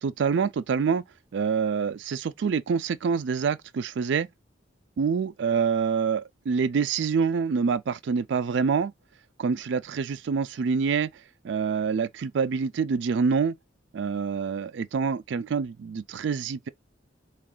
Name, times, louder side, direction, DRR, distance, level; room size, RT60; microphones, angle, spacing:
voice 1, 0.0-1.0 1.3-4.3 5.0-8.9 9.4-11.1 11.4-13.6 13.9-16.7, right 5 dB, 65° right, 0.4 m, -26 dB
4.6 x 2.4 x 3.8 m
head